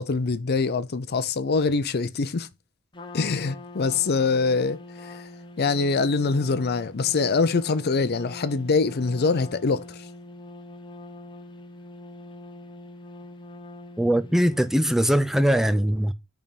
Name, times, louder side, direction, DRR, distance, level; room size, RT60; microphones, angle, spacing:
voice 1, 0.0-2.5 3.1-5.3 5.6-10.0, left 4 dB, 50° left, 0.6 m, -24 dB
Trumpet, 2.9-15.1, left 2 dB, 25° left, 0.9 m, -43 dB
voice 2, 14.0-16.1, equal, ahead, 0.3 m, -21 dB
8.9 x 3.5 x 5.1 m
head